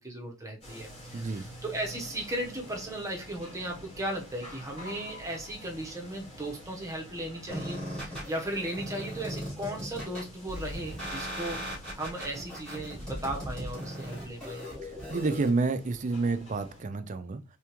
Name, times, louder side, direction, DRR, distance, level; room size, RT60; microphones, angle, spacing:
voice 1, 0.0-11.6 11.9-14.7, right 1 dB, 15° right, 0.8 m, -36 dB
sound 1, 0.6-16.8, equal, 30° left, 1.8 m, -49 dB
voice 2, 1.1-1.5 14.8-17.4, right 3 dB, 35° right, 0.4 m, -29 dB
sound 2, 7.5-15.5, equal, 5° left, 1.9 m, -38 dB
3.5 x 3.4 x 2.9 m
head